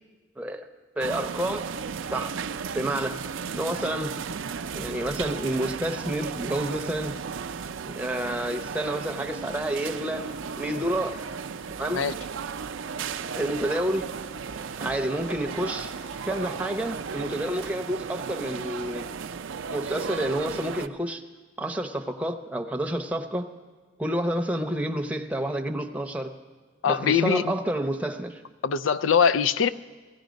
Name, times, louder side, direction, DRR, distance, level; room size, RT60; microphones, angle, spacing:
voice 1, 0.4-0.7 1.0-1.7 2.1-2.3 2.7-3.2 3.5-4.2 4.7-7.2 7.8-10.3 10.6-11.3 11.8-12.0 13.3-14.1 14.8-15.9 16.3-19.1 19.7-21.2 21.6-23.5 24.0-26.3 26.9-28.4, right 1 dB, 5° right, 5 dB, 0.7 m, -29 dB
sound 1, 1.0-20.9, right 6 dB, 90° right, 0.5 m, -35 dB
sound 2, 10.1-17.7, equal, 70° left, 5.7 m, -49 dB
voice 2, 26.8-27.5 28.6-29.7, left 7 dB, 90° left, 14 dB, 0.5 m, -22 dB
17.0 x 16.0 x 5.2 m, 1.4 s
head